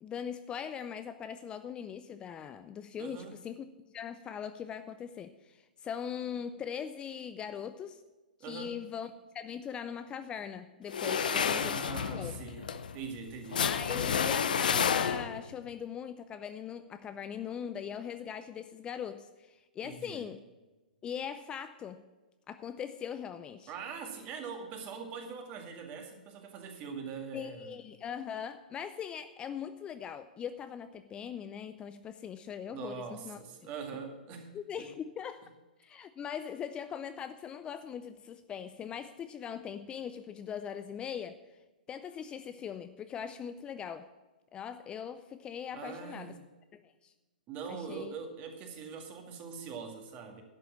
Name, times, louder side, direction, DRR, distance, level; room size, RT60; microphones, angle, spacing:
voice 1, 0.0-3.7 3.9-8.0 8.5-11.7 12.1-12.4 13.6-20.4 21.0-22.0 22.5-23.7 27.3-33.4 34.5-35.4 35.8-41.4 41.9-44.1 44.5-46.3 46.7-47.1 47.7-48.1, left 8 dB, 20° left, 11 dB, 0.4 m, -40 dB
voice 2, 3.0-3.4 8.4-8.8 11.0-12.7 12.9-13.7 19.8-20.3 23.7-27.8 32.7-34.9 45.7-46.4 47.5-50.4, right 6 dB, 35° right, 4 dB, 2.1 m, -42 dB
sound 1, 10.9-15.5, left 7 dB, 70° left, 0.7 m, -30 dB
11.5 x 7.0 x 7.4 m, 1.2 s
hypercardioid pair, 120°, 5 cm